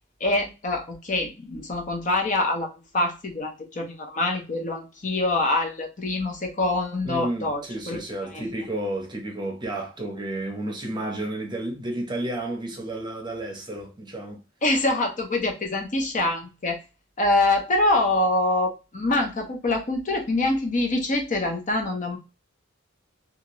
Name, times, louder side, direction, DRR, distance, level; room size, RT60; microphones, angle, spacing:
voice 1, 0.2-2.7 2.9-8.4 14.6-16.8 17.2-22.2, left 2 dB, 40° left, 0.7 m, -25 dB
voice 2, 7.0-14.4, right 1 dB, 20° right, 0.8 m, -31 dB
2.8 x 2.4 x 2.9 m
head